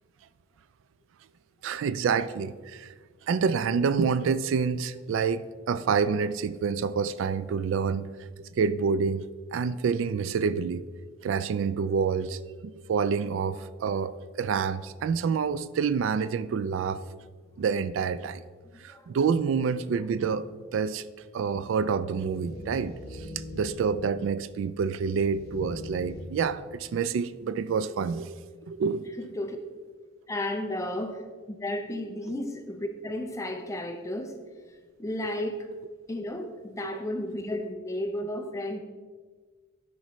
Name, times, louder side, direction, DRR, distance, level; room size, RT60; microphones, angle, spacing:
voice 1, 1.6-2.9 3.3-8.1 8.4-9.3 9.5-10.8 11.2-17.0 17.6-18.4 18.8-20.5 20.7-21.0 21.3-23.3 23.5-28.4 28.7-29.1 36.8-36.9, right 6 dB, 75° right, 14 dB, 0.3 m, -27 dB
sound 1, 22.1-27.3, left 1 dB, 50° left, 1.5 m, -43 dB
voice 2, 29.2-29.6 30.3-34.4 35.0-35.7 36.1-38.8, left 1 dB, 15° left, 6 dB, 0.5 m, -33 dB
10.5 x 4.9 x 3.1 m, 1.5 s
head